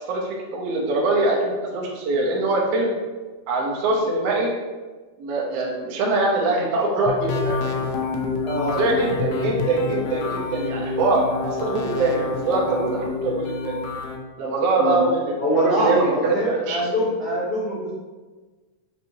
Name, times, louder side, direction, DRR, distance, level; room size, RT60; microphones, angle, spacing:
voice 1, 0.1-2.9 3.5-4.5 5.2-7.8 8.6-13.8 14.4-16.4 16.6-16.8, right 2 dB, 70° right, -2 dB, 1.5 m, -23 dB
sound 1, 7.1-14.2, left 5 dB, 90° left, 1.4 m, -28 dB
voice 2, 8.4-8.8 14.8-15.0 15.4-17.9, equal, 60° left, -13 dB, 0.9 m, -23 dB
5.2 x 3.0 x 2.7 m, 1.3 s
omnidirectional pair, 3.6 m